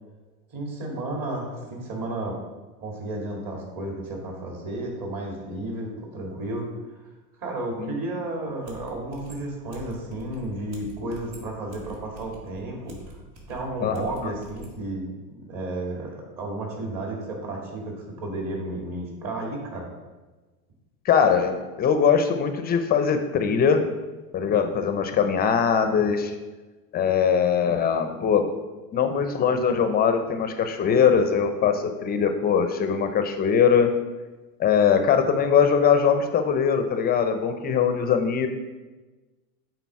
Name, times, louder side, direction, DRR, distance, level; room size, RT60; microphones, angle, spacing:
voice 1, 0.5-2.4 2.8-7.0 7.4-13.0 13.5-19.9, right 1 dB, 40° right, 0 dB, 2.2 m, -32 dB
sound 1, 8.6-14.8, right 3 dB, 85° right, 1.9 m, -46 dB
voice 2, 13.8-14.3 21.0-23.9 24.3-26.4 26.9-28.5 28.9-33.9 34.6-38.5, left 7 dB, 20° left, 8 dB, 0.4 m, -21 dB
8.4 x 4.0 x 4.6 m, 1.2 s
supercardioid pair, 120°, 49 cm